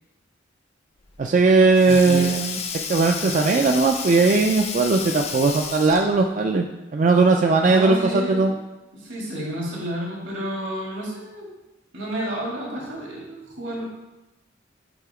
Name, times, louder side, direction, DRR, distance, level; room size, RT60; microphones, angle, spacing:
Sink (filling or washing), 1.1-6.2, left 6 dB, 35° left, 0.5 m, -32 dB
voice 1, 1.2-2.6 2.9-6.7 6.9-8.5, right 3 dB, 40° right, 3 dB, 0.3 m, -18 dB
voice 2, 1.9-2.3 7.6-8.5 8.9-11.4 11.9-13.8, equal, 75° right, -4 dB, 2.1 m, -30 dB
7.8 x 2.8 x 4.9 m, 1.0 s
head